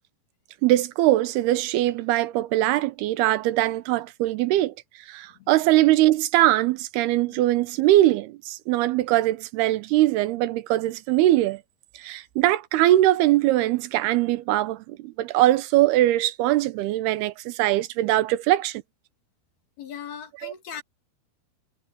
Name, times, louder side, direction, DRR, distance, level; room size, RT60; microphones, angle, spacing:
voice 1, 0.6-4.7 5.1-11.6 12.0-18.8 20.4-20.5, right 15 dB, 90° right, 2.9 m, -21 dB
voice 2, 19.8-20.8, left 8 dB, 75° left, 4.8 m, -39 dB
omnidirectional pair, 4.4 m